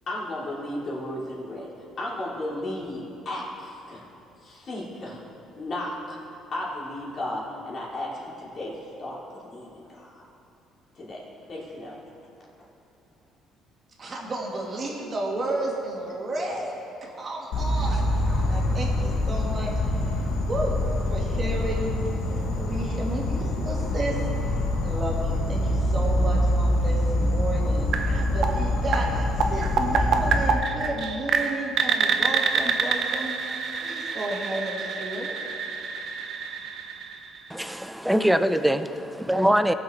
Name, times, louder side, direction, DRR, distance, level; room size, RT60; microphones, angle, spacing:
voice 1, 0.1-1.7 2.0-4.0 4.4-5.2 5.6-6.2 6.5-10.2 10.9-11.2 11.5-12.0, left 1 dB, 40° left, -5 dB, 3.0 m, -34 dB
voice 2, 14.0-20.1 20.5-20.7 21.1-21.9 22.3-24.2 24.5-33.3 33.8-35.3, right 2 dB, 35° right, -2 dB, 2.1 m, -32 dB
Insect, 17.5-30.5, left 1 dB, 75° left, 1.3 m, -25 dB
sound 1, 27.9-37.7, right 5 dB, 55° right, 0.8 m, -27 dB
voice 3, 37.5-39.7, right 1 dB, 5° right, 10 dB, 0.4 m, -23 dB
18.5 x 6.4 x 4.4 m, 2.8 s
cardioid pair, 125°, 0 cm